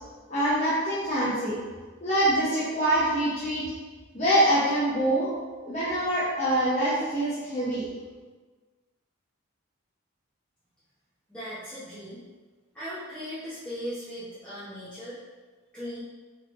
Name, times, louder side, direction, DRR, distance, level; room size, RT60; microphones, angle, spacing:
voice 1, 0.3-1.6 2.0-3.6 4.1-5.3 5.7-7.9, right 1 dB, 35° left, -11 dB, 0.9 m, -25 dB
voice 2, 11.3-12.2 12.7-15.2 15.7-16.0, equal, 5° left, -13 dB, 0.9 m, -38 dB
4.9 x 3.9 x 2.5 m, 1.4 s
head